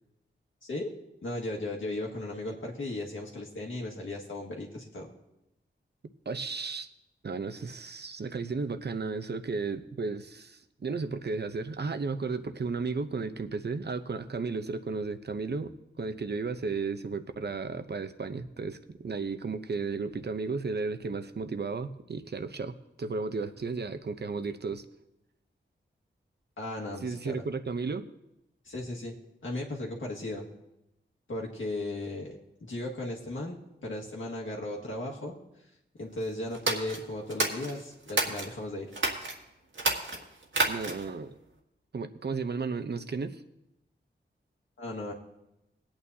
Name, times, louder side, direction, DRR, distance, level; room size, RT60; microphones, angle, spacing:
voice 1, 0.6-0.9 1.2-5.1 26.6-27.4 28.7-29.1 29.4-30.5 31.3-35.3 36.0-38.9 44.8-45.1, left 2 dB, 85° left, -2 dB, 1.8 m, -36 dB
voice 2, 6.3-6.9 7.2-24.8 27.0-28.1 40.7-41.3 41.9-43.4, right 4 dB, 60° right, 9 dB, 0.7 m, -34 dB
sound 1, 36.5-38.5 38.9-39.3 39.7-41.1, right 2 dB, 75° right, 1.7 m, -30 dB
20.5 x 8.8 x 2.8 m, 0.88 s
wide cardioid pair, 75°, 20 cm